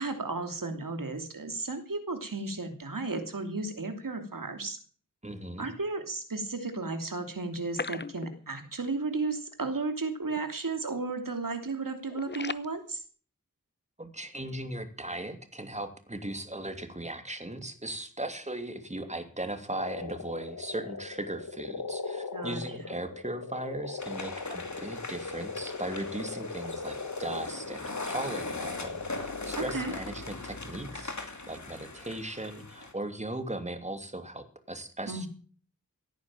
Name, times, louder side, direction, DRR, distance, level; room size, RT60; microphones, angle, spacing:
voice 1, 0.0-4.8 5.6-13.0 22.3-22.6 29.6-29.9 35.1-35.3, right 3 dB, 75° right, 6 dB, 2.9 m, -34 dB
voice 2, 5.2-5.7 14.0-35.3, right 1 dB, 20° right, 7 dB, 2.8 m, -38 dB
sound 1, 7.5-8.8 9.0-9.2 9.5-9.6 10.2-10.5 10.8-11.1 11.5-12.7, left 4 dB, 30° left, 0.7 m, -39 dB
sound 2, 19.7-29.8, left 4 dB, 75° left, 1.5 m, -39 dB
sound 3, 24.0-32.9, left 3 dB, 55° left, 2.7 m, -40 dB
17.0 x 9.5 x 7.6 m, 0.43 s
wide cardioid pair, 50°, 33 cm